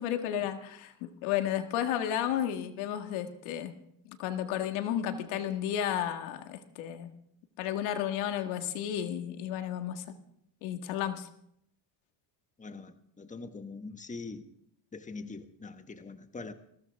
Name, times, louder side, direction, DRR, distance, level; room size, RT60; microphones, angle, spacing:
voice 1, 0.0-3.7 4.1-7.1 7.6-10.0 10.6-11.3, left 10 dB, 85° left, 1.8 m, -32 dB
voice 2, 12.6-14.5 14.9-16.5, left 3 dB, 15° left, 1.3 m, -43 dB
21.0 x 16.0 x 3.5 m
supercardioid pair, 95°, 47 cm